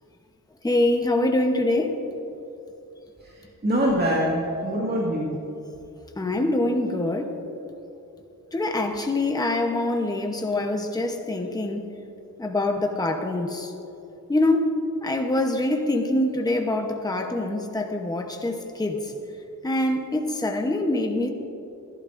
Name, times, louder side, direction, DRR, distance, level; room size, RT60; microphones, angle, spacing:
voice 1, 0.6-2.0 6.2-7.4 8.5-11.9 12.4-13.7 14.3-14.8 15.0-19.1 19.6-21.3, left 2 dB, 10° left, 3 dB, 0.9 m, -24 dB
voice 2, 3.2-5.3 17.1-17.2, equal, 30° right, -4 dB, 1.9 m, -25 dB
26.5 x 12.0 x 2.6 m, 2.8 s
wide cardioid pair, 170°, 33 cm